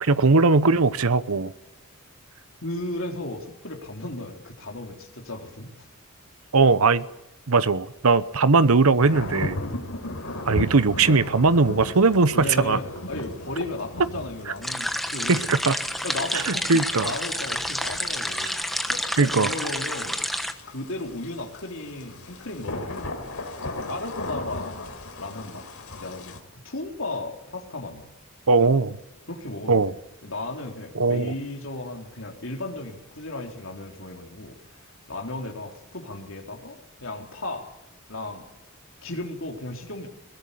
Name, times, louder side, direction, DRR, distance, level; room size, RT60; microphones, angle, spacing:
voice 1, 0.0-1.5 6.5-7.0 7.5-9.6 10.4-12.8 15.3-15.8 16.3-17.1 19.2-19.5 28.5-29.0 29.7-29.9 31.0-31.3, right 4 dB, 85° right, 0.9 m, -19 dB
voice 2, 2.6-5.9 12.3-15.5 16.0-20.2 20.7-23.3 23.9-25.6 26.0-28.1 29.3-29.9 30.2-34.8 35.1-37.7 38.1-38.5 39.0-40.1, left 2 dB, 65° left, 3.7 m, -35 dB
sound 1, 9.0-26.4, left 1 dB, 85° left, 3.8 m, -37 dB
sound 2, 14.6-20.5, equal, ahead, 1.1 m, -29 dB
21.5 x 18.0 x 8.4 m
head